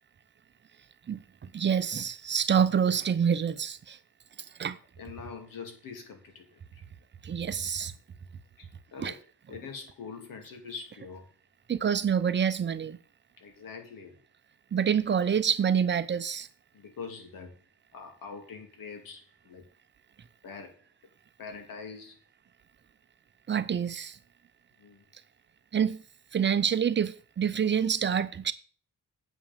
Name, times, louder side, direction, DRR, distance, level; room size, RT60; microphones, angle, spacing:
voice 1, 1.5-4.0 4.6-4.8 7.2-7.9 9.0-9.1 11.7-13.0 14.7-16.5 23.5-24.2 25.7-26.0 26.3-28.5, right 7 dB, 35° right, 0.7 m, -27 dB
voice 2, 5.0-6.8 8.6-9.2 9.5-11.3 13.4-14.2 16.7-17.6 17.9-19.7 20.4-20.8 21.4-22.2 24.8-25.1, left 5 dB, 85° left, 2.5 m, -44 dB
8.4 x 5.5 x 7.5 m
wide cardioid pair, 160°, 33 cm